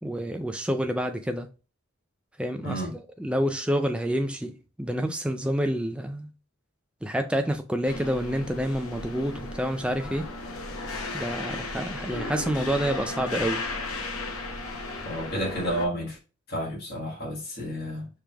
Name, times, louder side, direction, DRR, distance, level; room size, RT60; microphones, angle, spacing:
voice 1, 0.0-1.5 2.4-6.3 7.0-10.3 11.1-13.7, equal, 5° right, 0.3 m, -28 dB
sound 1, 7.8-15.9, left 2 dB, 85° left, 0.8 m, -35 dB
voice 2, 15.0-16.2 16.5-18.1, equal, 45° left, 1.6 m, -31 dB
5.0 x 3.3 x 2.3 m
head